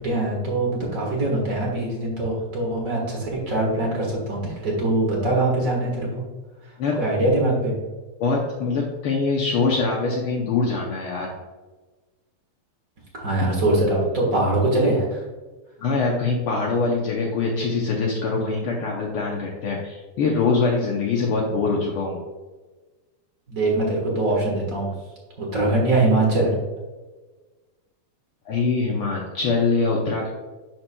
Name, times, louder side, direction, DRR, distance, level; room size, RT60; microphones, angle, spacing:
voice 1, 0.0-6.2 6.6-7.7 13.1-15.2 23.5-24.9 25.4-26.5, right 2 dB, 45° right, -3 dB, 1.1 m, -22 dB
voice 2, 8.2-11.3 15.8-22.2 28.5-30.3, left 4 dB, 85° left, -1 dB, 1.2 m, -23 dB
11.0 x 4.5 x 2.2 m, 1.2 s
omnidirectional pair, 3.5 m